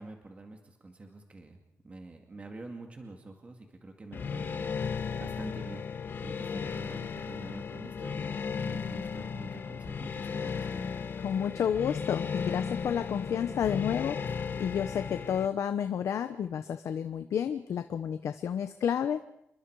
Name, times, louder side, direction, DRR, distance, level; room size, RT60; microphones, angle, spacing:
voice 1, 0.0-1.6 1.8-10.9, right 2 dB, 25° right, 3 dB, 2.2 m, -47 dB
sound 1, 4.1-15.5, left 6 dB, 45° left, 1.2 m, -35 dB
voice 2, 11.2-19.2, left 8 dB, 80° left, 9 dB, 1.0 m, -31 dB
28.0 x 23.0 x 4.8 m, 0.78 s
wide cardioid pair, 170°, 5 cm